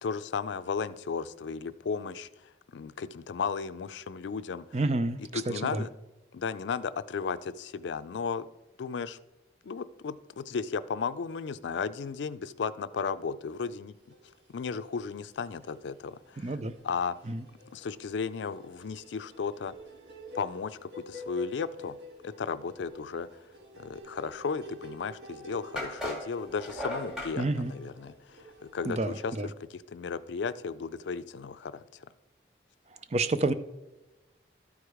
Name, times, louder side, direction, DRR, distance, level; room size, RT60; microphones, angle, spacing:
voice 1, 0.0-4.8 5.3-5.9 6.3-8.5 8.8-9.2 9.6-13.9 14.5-16.6 16.8-17.2 17.7-19.7 20.3-22.0 22.2-23.3 23.8-28.5 28.7-29.3 29.7-32.1, left 5 dB, 85° left, 14 dB, 0.4 m, -35 dB
voice 2, 4.7-5.8 16.4-16.7 17.3-17.4 27.4-27.7 28.9-29.5 33.1-33.5, right 2 dB, 35° right, 11 dB, 0.5 m, -29 dB
sound 1, 14.1-14.9 15.2-29.4, left 1 dB, 75° right, 1.9 m, -49 dB
sound 2, 25.8-27.4, left 1 dB, 5° right, 2.2 m, -36 dB
12.5 x 4.8 x 4.9 m, 1.1 s
head